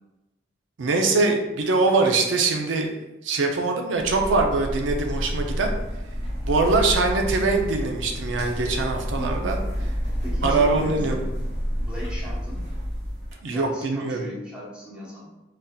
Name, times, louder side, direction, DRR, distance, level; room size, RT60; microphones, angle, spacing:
voice 1, 0.8-2.9 3.2-5.7 6.5-9.6 10.4-11.2 13.4-14.3, right 3 dB, 85° right, 3 dB, 0.5 m, -23 dB
sound 1, 4.0-13.3, equal, 70° right, 1.5 m, -29 dB
voice 2, 9.2-9.6 10.2-11.3 11.8-12.6 13.5-15.3, equal, 5° right, -7 dB, 1.0 m, -37 dB
3.9 x 2.6 x 2.3 m, 1.0 s
head